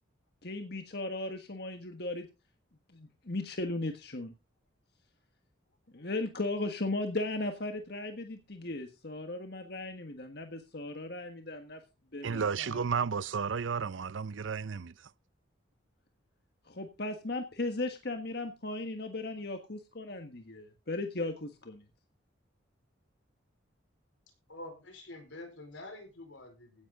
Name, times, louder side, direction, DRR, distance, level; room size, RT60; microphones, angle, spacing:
voice 1, 0.4-2.3 2.9-4.3 5.9-11.8 12.1-12.8 16.7-21.8, left 2 dB, 55° left, 1.5 m, -37 dB
voice 2, 12.2-15.1, right 6 dB, 75° right, 0.6 m, -33 dB
voice 3, 24.5-26.9, left 2 dB, 75° left, 4.6 m, -47 dB
16.5 x 10.5 x 3.8 m
head